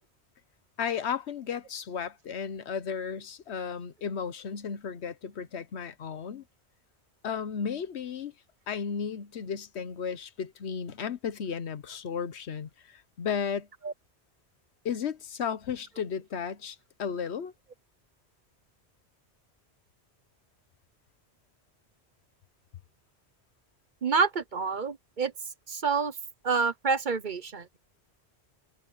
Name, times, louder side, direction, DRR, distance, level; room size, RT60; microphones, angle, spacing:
voice 1, 0.8-6.4 7.2-8.3 8.7-13.7 14.8-17.5, left 7 dB, 85° left, 1.2 m, -34 dB
voice 2, 24.0-25.3 25.7-26.1 26.4-27.7, right 5 dB, 50° right, 1.0 m, -27 dB
omnidirectional pair, 1.1 m